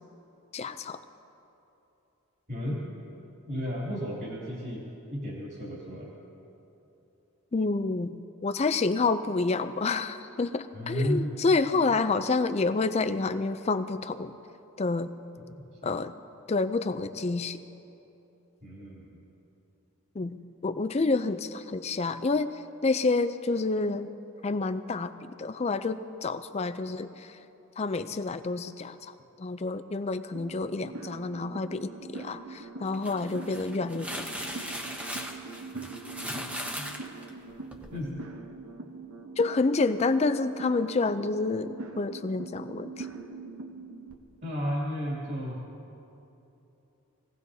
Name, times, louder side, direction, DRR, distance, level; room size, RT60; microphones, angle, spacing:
voice 1, 0.5-1.0 7.5-14.3 14.8-15.1 15.8-16.1 16.5-17.6 20.1-20.4 20.6-24.1 24.4-27.4 27.8-34.3 39.4-43.1, left 3 dB, 30° left, 10 dB, 0.4 m, -28 dB
voice 2, 2.5-2.8 3.4-4.8 5.1-6.1 10.7-11.3 15.8-15.9 18.6-19.2 35.7-35.9 36.3-36.4 36.7-36.9 37.9-38.1 44.4-45.6, equal, 45° right, -5 dB, 2.5 m, -33 dB
sound 1, 30.3-44.1, right 3 dB, 70° right, 0.9 m, -43 dB
sound 2, 32.9-38.0, equal, 5° right, 0.8 m, -38 dB
22.0 x 17.0 x 2.7 m, 3.0 s
head